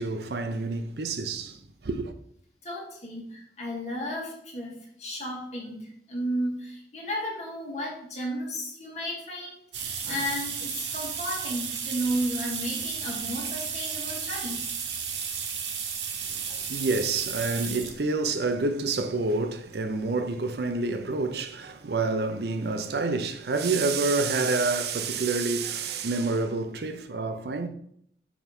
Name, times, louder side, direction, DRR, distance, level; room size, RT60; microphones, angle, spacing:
voice 1, 0.0-2.1 16.3-27.7, right 3 dB, 65° right, 0.6 m, -28 dB
voice 2, 2.6-14.7 16.5-16.6, equal, 40° left, 2.0 m, -33 dB
sound 1, 9.7-18.0 18.9-19.0 20.2-20.3 20.6-20.7 21.0-21.1, right 6 dB, 85° right, 1.0 m, -33 dB
5.1 x 4.4 x 5.2 m
head